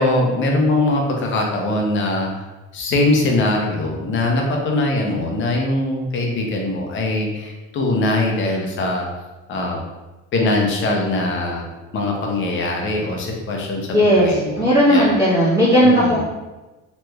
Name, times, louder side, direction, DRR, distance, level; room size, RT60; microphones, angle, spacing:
voice 1, 0.0-2.5 2.7-9.1 9.5-9.8 10.3-11.7 11.9-15.1 15.8-16.2, left 2 dB, 40° left, 0 dB, 0.6 m, -21 dB
voice 2, 13.9-14.3 14.5-16.2, equal, 10° right, -10 dB, 1.3 m, -15 dB
3.1 x 3.0 x 2.2 m, 1.1 s
cardioid pair, 165°, 32 cm